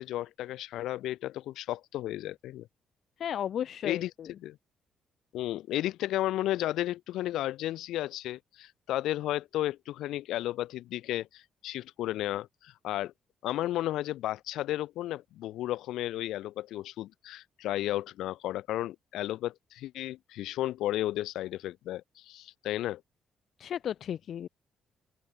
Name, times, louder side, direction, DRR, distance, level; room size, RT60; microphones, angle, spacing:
voice 1, 0.0-2.7 3.8-4.1 4.4-4.6 5.3-13.1 13.4-23.0, left 14 dB, 85° left, 1.2 m, -33 dB
voice 2, 3.2-4.3 23.6-24.5, left 9 dB, 65° left, 0.5 m, -34 dB
open air
cardioid pair, 90°, 0 cm